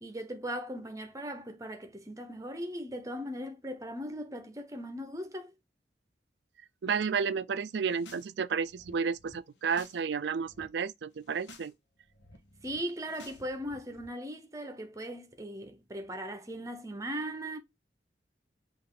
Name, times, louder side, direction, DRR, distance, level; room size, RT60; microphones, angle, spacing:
voice 1, 0.0-5.5 12.6-17.6, equal, 20° right, 0.7 m, -38 dB
voice 2, 6.8-11.7, right 6 dB, 65° right, 0.4 m, -31 dB
sound 1, 7.7-8.3 8.6-10.0 10.3-10.7 11.1-11.7 12.0-14.1, left 1 dB, 75° left, 1.1 m, -54 dB
5.6 x 2.5 x 3.7 m
head